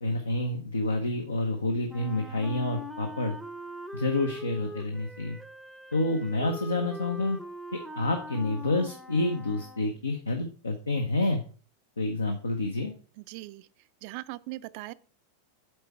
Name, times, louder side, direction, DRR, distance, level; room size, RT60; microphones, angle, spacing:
voice 1, 0.0-3.4 3.9-5.4 5.9-7.4 8.0-11.4 12.0-12.9, left 2 dB, 75° left, 0.7 m, -28 dB
Wind instrument woodwind instrument, 1.9-10.0, left 1 dB, ahead, 0.6 m, -42 dB
voice 2, 13.3-13.6 14.0-14.9, right 19 dB, 45° right, 0.3 m, -39 dB
7.8 x 4.4 x 4.5 m
figure-of-eight pair, 90°, 0 cm